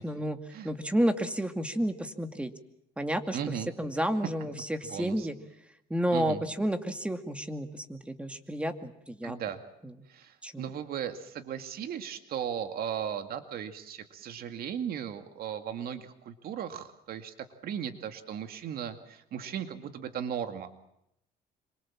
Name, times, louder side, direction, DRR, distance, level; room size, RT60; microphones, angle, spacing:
voice 1, 0.0-0.4 0.6-2.5 3.0-3.4 3.8-5.4 5.9-9.4 9.8-9.9 10.4-10.7, equal, 5° right, 8 dB, 2.4 m, -31 dB
voice 2, 3.3-3.7 4.9-5.3 6.1-6.4 9.2-9.6 10.1-17.3 17.6-20.7, right 8 dB, 65° right, 8 dB, 2.3 m, -36 dB
26.5 x 24.0 x 7.5 m, 0.79 s
cardioid pair, 110°, 17 cm